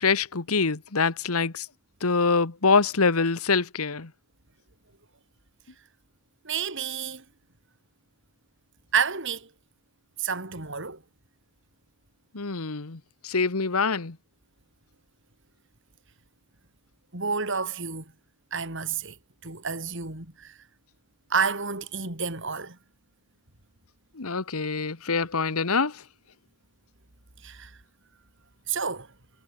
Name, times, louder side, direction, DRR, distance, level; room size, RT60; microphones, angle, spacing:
voice 1, 0.0-1.7 2.0-4.1 12.3-14.2 24.2-25.9, left 4 dB, 85° left, 1.4 m, -25 dB
voice 2, 6.4-7.2 8.9-9.5 10.2-11.0 17.1-18.1 18.5-19.2 19.4-20.6 21.3-22.8 27.4-27.8 28.7-29.1, right 6 dB, 55° right, 4.2 m, -30 dB
head